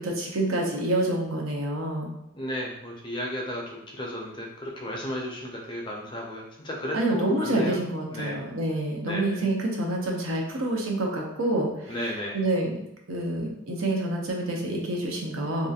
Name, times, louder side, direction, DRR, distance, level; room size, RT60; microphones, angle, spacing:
voice 1, 0.0-2.1 6.9-12.0 12.3-12.8 13.1-15.7, right 1 dB, 80° right, 0 dB, 0.6 m, -27 dB
voice 2, 2.4-7.8 8.1-8.4 9.1-9.5 11.9-12.4, equal, 25° left, -1 dB, 0.4 m, -34 dB
2.8 x 2.4 x 2.3 m, 0.84 s
head